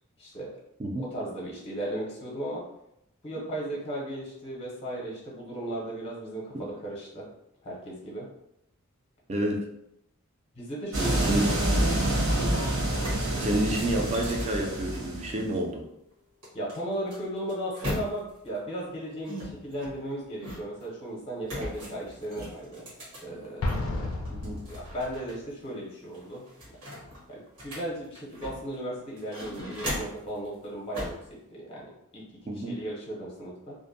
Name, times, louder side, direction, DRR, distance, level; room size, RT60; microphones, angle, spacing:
voice 1, 0.2-0.5 1.0-2.6 3.2-7.3 7.6-8.3 10.5-11.5 12.4-12.7 16.5-22.9 23.2-24.1 24.7-26.4 27.3-31.2 31.5-33.8, right 1 dB, 25° left, -4 dB, 0.6 m, -36 dB
voice 2, 9.3-9.6 11.2-11.4 13.4-15.8 24.3-24.6 32.5-32.8, right 1 dB, 30° right, 1 dB, 0.4 m, -29 dB
sound 1, 10.9-15.4, right 1 dB, 70° right, 0.9 m, -27 dB
sound 2, 12.4-12.5 12.8-15.5 16.4-18.5 19.2-20.9 21.4-23.8 24.2-25.3 25.6-25.7 26.1-28.8 29.2-30.3 30.9-31.3, equal, 85° right, 1.2 m, -39 dB
Explosion, 23.6-25.3, left 2 dB, 70° left, 0.4 m, -32 dB
2.5 x 2.1 x 2.6 m, 0.80 s
head